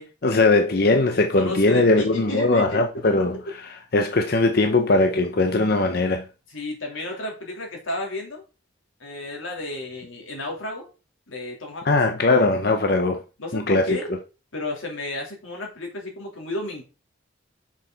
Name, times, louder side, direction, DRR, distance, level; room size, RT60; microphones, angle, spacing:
voice 1, 0.2-6.3 11.8-13.2 13.5-13.9, left 2 dB, 50° left, 0.7 m, -20 dB
voice 2, 1.3-3.0 6.5-8.4 9.0-10.9 11.3-11.9 13.4-14.1 14.5-16.8, left 2 dB, 85° left, 3.2 m, -32 dB
7.2 x 6.4 x 3.9 m
head